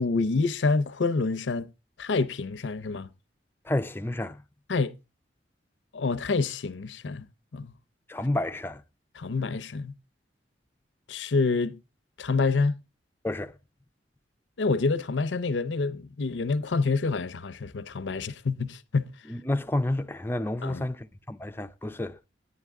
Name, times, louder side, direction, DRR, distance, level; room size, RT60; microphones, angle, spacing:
voice 1, 0.0-1.7 2.0-3.1 4.7-4.9 5.9-7.3 7.5-7.7 9.2-10.0 11.1-11.8 12.2-12.8 14.6-19.1 20.6-20.8, left 4 dB, 85° left, 0.6 m, -27 dB
voice 2, 3.6-4.4 8.1-8.8 13.2-13.5 19.3-22.2, left 1 dB, 10° left, 0.4 m, -30 dB
11.0 x 9.8 x 3.5 m
head